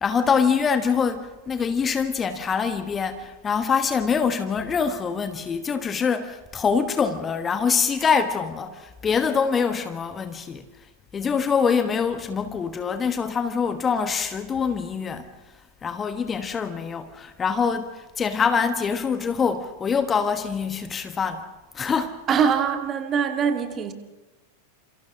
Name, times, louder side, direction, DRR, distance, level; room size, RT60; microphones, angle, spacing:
voice 1, 0.0-10.7 11.1-15.3 15.8-21.5 21.7-22.2, left 6 dB, 20° left, 1.4 m, -24 dB
voice 2, 22.3-23.9, right 7 dB, 25° right, 2.3 m, -23 dB
29.5 x 27.5 x 3.8 m
figure-of-eight pair, 90°, 0 cm